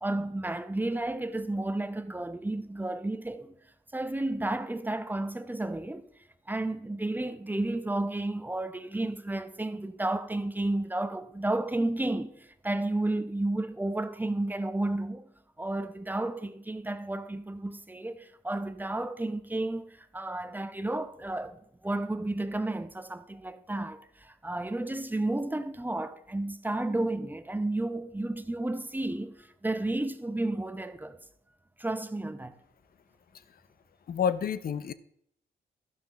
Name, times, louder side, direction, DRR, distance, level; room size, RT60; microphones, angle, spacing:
voice 1, 0.0-3.5 3.9-6.1 6.5-15.3 15.6-31.2 31.8-32.5, right 2 dB, 10° right, 0.8 m, -32 dB
voice 2, 34.1-34.9, left 8 dB, 60° left, 0.6 m, -29 dB
12.0 x 6.0 x 4.1 m
cardioid pair, 65°, 18 cm